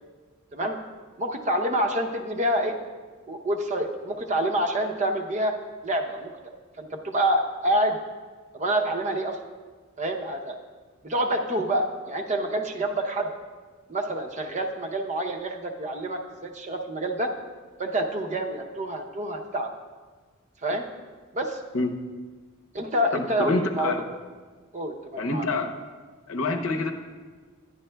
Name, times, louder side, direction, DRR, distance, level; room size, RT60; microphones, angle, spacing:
voice 1, 1.2-2.8 3.3-5.5 5.8-6.3 6.8-8.0 8.5-9.4 10.0-10.6 11.0-13.3 13.9-17.3 17.8-19.7 20.6-20.8 21.3-21.6 22.7-24.0 24.7-25.5, right 1 dB, 35° right, 3 dB, 0.6 m, -27 dB
voice 2, 23.1-24.0 25.2-25.7 26.3-26.9, left 3 dB, 75° left, 5 dB, 0.7 m, -26 dB
10.0 x 9.5 x 2.2 m, 1.4 s
head